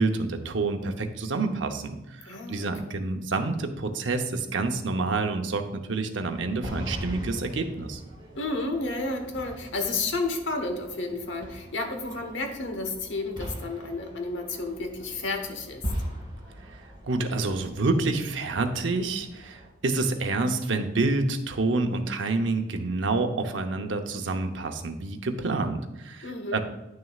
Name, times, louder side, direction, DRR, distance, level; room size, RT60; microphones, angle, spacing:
voice 1, 0.0-8.0 16.7-26.6, right 3 dB, 85° right, 5 dB, 0.8 m, -28 dB
voice 2, 2.3-3.0 8.3-15.8 26.2-26.6, left 3 dB, 80° left, 5 dB, 1.2 m, -31 dB
sound 1, 6.2-19.7, equal, 25° right, 2.6 m, -40 dB
9.7 x 6.4 x 2.4 m, 0.98 s
head